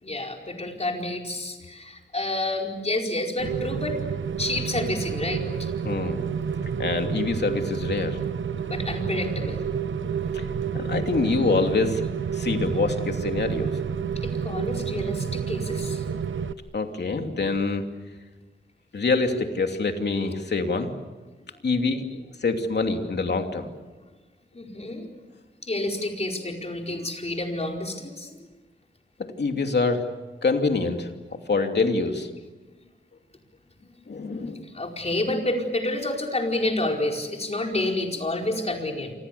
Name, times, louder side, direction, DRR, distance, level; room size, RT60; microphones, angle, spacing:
voice 1, 0.0-4.0 4.4-5.7 8.6-9.6 14.2-16.0 24.5-25.1 25.6-28.4 33.9-34.0 34.7-39.1, left 2 dB, 35° left, 1 dB, 4.8 m, -29 dB
Rain, 3.4-16.5, right 7 dB, 85° right, 0.9 m, -29 dB
voice 2, 5.8-6.2 6.8-8.2 10.3-10.4 10.7-12.0 12.3-13.7 16.7-17.9 18.9-20.9 21.6-23.7 29.4-30.0 30.4-31.1 31.5-32.3 34.1-34.6, left 3 dB, 60° left, 4 dB, 2.8 m, -25 dB
28.5 x 26.5 x 7.0 m, 1.2 s
wide cardioid pair, 110°, 19 cm